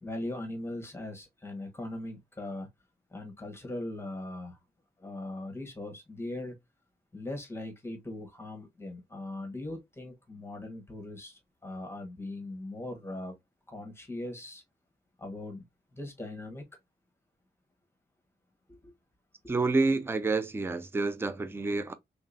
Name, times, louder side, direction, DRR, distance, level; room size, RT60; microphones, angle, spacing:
voice 1, 0.0-2.7 3.1-4.6 5.0-6.5 7.1-13.4 13.7-14.6 15.2-15.6 15.9-16.6 18.7-18.9, left 1 dB, 15° left, 1.1 m, -40 dB
voice 2, 19.5-21.9, right 3 dB, 15° right, 0.4 m, -28 dB
3.7 x 3.3 x 2.4 m
wide cardioid pair, 145°, 17 cm